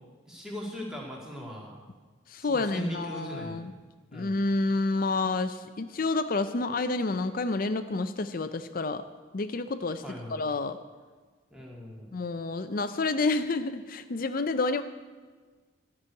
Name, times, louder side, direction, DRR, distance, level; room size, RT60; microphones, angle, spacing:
voice 1, 0.3-1.7 2.4-3.6 4.1-4.4 10.0-10.4 11.5-12.1, equal, 5° right, -2 dB, 2.2 m, -39 dB
voice 2, 2.3-3.7 4.1-9.0 9.3-10.0 10.3-10.8 12.1-14.8, left 3 dB, 45° left, 10 dB, 0.5 m, -29 dB
13.5 x 6.2 x 9.4 m, 1.4 s
head